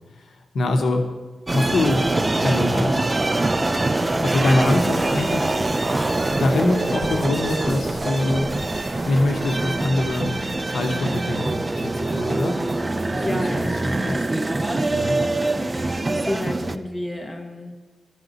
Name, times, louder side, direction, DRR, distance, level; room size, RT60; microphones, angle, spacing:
voice 1, 0.2-1.0 1.5-3.1 4.2-5.6 6.3-8.5 9.1-10.3 10.6-12.5 13.1-14.3 14.9-15.2, left 2 dB, 75° left, 4 dB, 0.9 m, -24 dB
sound 1, 1.5-16.8, right 2 dB, 20° right, 0.3 m, -24 dB
voice 2, 2.7-3.0 12.9-14.9 16.1-17.8, left 1 dB, 20° left, 2 dB, 1.0 m, -32 dB
sound 2, 4.6-12.2, right 1 dB, 35° right, 2.9 m, -38 dB
13.5 x 5.0 x 4.0 m, 1.2 s
wide cardioid pair, 135°, 0 cm